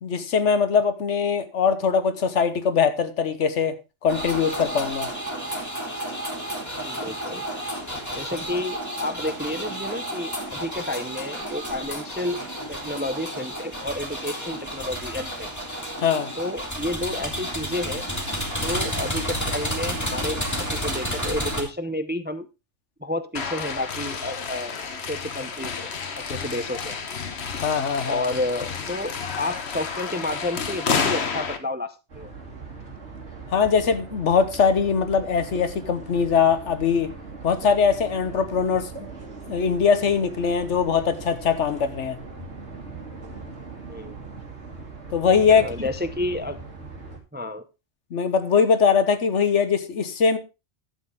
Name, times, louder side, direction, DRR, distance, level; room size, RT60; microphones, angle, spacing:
voice 1, 0.0-3.8 4.0-5.1 16.0-16.3 27.6-28.2 33.5-37.1 37.4-39.1 39.5-42.2 45.1-45.7 48.1-50.4, left 6 dB, 80° left, 1.4 m, -21 dB
sound 1, 4.1-21.6, equal, 15° left, 2.3 m, -31 dB
voice 2, 6.8-7.4 8.1-12.4 12.7-15.5 16.4-18.1 18.6-22.5 23.0-25.9 26.2-27.0 28.0-32.3 43.8-44.2 45.5-46.6 47.3-47.6, left 1 dB, 10° right, 0.5 m, -31 dB
sound 2, 23.3-31.6, left 5 dB, 65° left, 1.4 m, -30 dB
sound 3, 32.1-47.2, right 4 dB, 70° right, 2.9 m, -40 dB
11.5 x 8.3 x 3.7 m
omnidirectional pair, 1.2 m